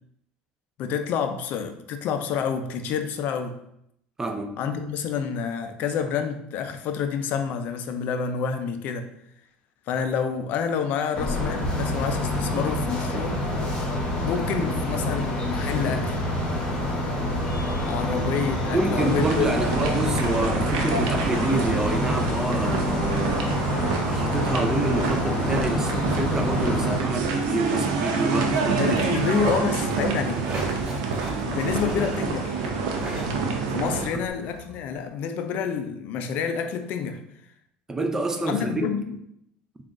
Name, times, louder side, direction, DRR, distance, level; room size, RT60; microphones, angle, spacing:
voice 1, 0.8-3.6 4.6-9.1 9.9-13.4 14.2-16.2 17.8-19.9 28.8-30.4 31.4-32.7 33.7-37.2 38.5-39.2, left 7 dB, 60° left, 0.4 m, -28 dB
voice 2, 4.2-4.6 14.6-14.7 18.7-23.6 24.0-29.2 34.1-34.2 37.9-38.9, right 2 dB, 15° right, 0.5 m, -28 dB
sound 1, 11.1-27.0, left 1 dB, 35° left, 1.1 m, -27 dB
sound 2, 18.9-34.1, right 4 dB, 90° right, 0.5 m, -27 dB
sound 3, 28.5-35.0, right 1 dB, 30° right, 1.3 m, -39 dB
3.6 x 2.4 x 3.7 m
supercardioid pair, 110°, 3 cm